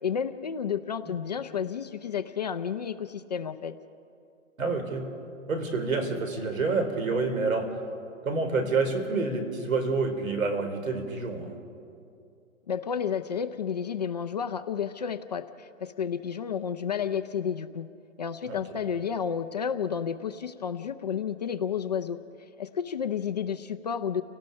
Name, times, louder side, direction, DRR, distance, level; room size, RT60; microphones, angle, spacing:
voice 1, 0.0-3.7 12.7-17.9 18.2-22.2 22.6-24.2, left 7 dB, 30° left, 8 dB, 0.5 m, -31 dB
voice 2, 4.6-5.1 5.5-7.7 8.2-11.5 18.5-18.6, right 3 dB, 80° right, 6 dB, 4.1 m, -28 dB
29.5 x 18.5 x 5.3 m, 2.5 s
hypercardioid pair, 160°, 40 cm